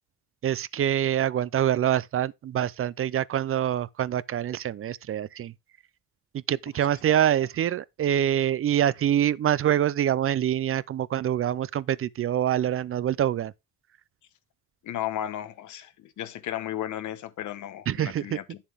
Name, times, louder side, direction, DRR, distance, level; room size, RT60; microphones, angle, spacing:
voice 1, 0.4-5.5 6.5-13.5 17.9-18.4, right 10 dB, 45° right, 0.5 m, -25 dB
voice 2, 14.8-18.6, left 12 dB, 75° left, 1.1 m, -34 dB
8.7 x 7.3 x 3.5 m
cardioid pair, 90°, 30 cm